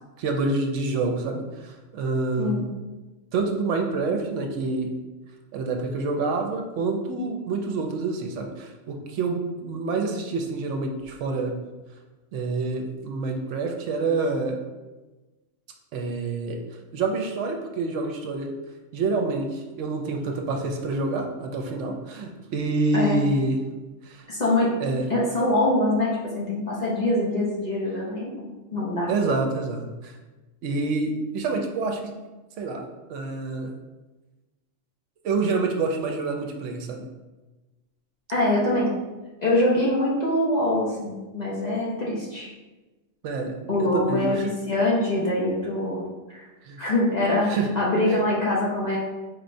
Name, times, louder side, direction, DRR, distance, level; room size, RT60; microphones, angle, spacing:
voice 1, 0.2-2.6 3.3-5.0 5.5-11.6 12.3-14.6 15.9-16.6 16.9-18.5 18.9-23.6 24.0-24.2 24.8-25.1 29.1-30.1 30.6-32.1 32.6-33.7 35.2-37.0 43.2-44.5 46.6-46.8 47.5-47.7 48.1-48.2, right 3 dB, 75° right, 3 dB, 0.9 m, -27 dB
voice 2, 22.9-23.2 24.3-24.7 25.1-29.1 38.3-38.9 39.4-42.5 43.7-46.0 46.3-46.4 46.8-49.0, left 1 dB, 40° left, -5 dB, 0.7 m, -24 dB
4.7 x 3.1 x 2.6 m, 1.2 s
omnidirectional pair, 1.3 m